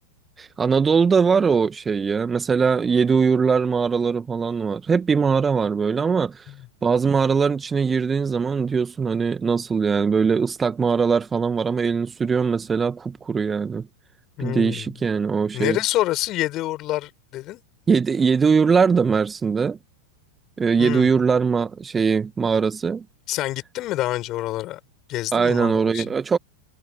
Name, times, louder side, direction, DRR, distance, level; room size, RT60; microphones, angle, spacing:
voice 1, 0.4-6.5 6.8-13.8 14.4-15.8 17.9-19.8 20.6-23.0 25.3-26.4, right 5 dB, 15° right, 1.8 m, -21 dB
voice 2, 14.4-14.9 15.5-17.6 20.8-21.1 23.3-24.8 25.1-26.1, left 16 dB, 35° left, 7.2 m, -27 dB
figure-of-eight pair, 90°, 0 cm